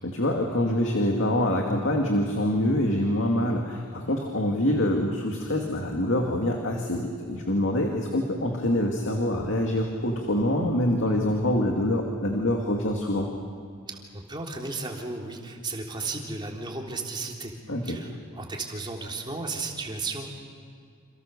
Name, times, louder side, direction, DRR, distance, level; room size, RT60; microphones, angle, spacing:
voice 1, 0.0-13.3 17.7-18.0, left 1 dB, 55° left, 1 dB, 2.5 m, -25 dB
voice 2, 13.9-17.5 17.8-20.3, right 3 dB, 20° right, 0 dB, 3.5 m, -34 dB
29.0 x 27.5 x 6.9 m, 2.2 s
head